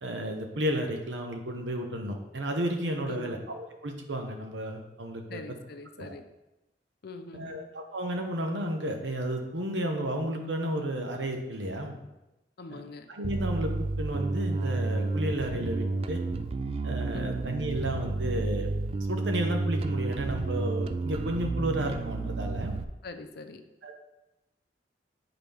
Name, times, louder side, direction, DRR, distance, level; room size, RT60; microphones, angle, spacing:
voice 1, 0.0-5.4 6.0-6.1 7.3-12.0 12.7-12.8 13.1-16.2 16.8-18.7 19.1-22.7 23.8-23.9, right 1 dB, 90° right, 3 dB, 1.0 m, -32 dB
voice 2, 3.1-3.5 5.3-6.2 7.0-7.6 12.6-13.1 17.1-17.4 23.0-23.6, left 3 dB, 60° left, 8 dB, 0.6 m, -43 dB
Bass guitar, 13.2-22.8, right 3 dB, 35° right, 0.3 m, -31 dB
8.9 x 3.9 x 3.5 m, 0.97 s
head